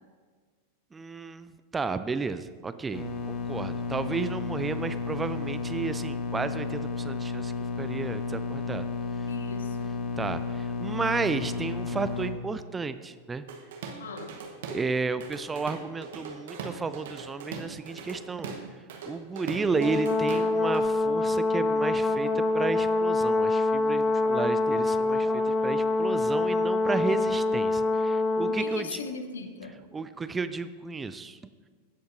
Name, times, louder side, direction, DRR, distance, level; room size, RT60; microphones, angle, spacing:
voice 1, 0.9-8.9 10.2-13.4 14.7-18.5 19.0-29.0 29.9-31.4, right 4 dB, 15° right, 12 dB, 0.3 m, -32 dB
sound 1, 2.9-12.3, left 4 dB, 40° left, 1.6 m, -32 dB
voice 2, 9.3-10.0 14.0-14.3 28.5-29.8, left 4 dB, 65° left, 7 dB, 0.8 m, -39 dB
Drum kit / Drum, 13.5-14.9 15.2-20.9, right 5 dB, 55° right, 1.0 m, -40 dB
Brass instrument, 19.8-28.7, left 2 dB, 15° left, 0.8 m, -25 dB
15.5 x 7.8 x 2.6 m, 1.5 s
figure-of-eight pair, 90°, 0 cm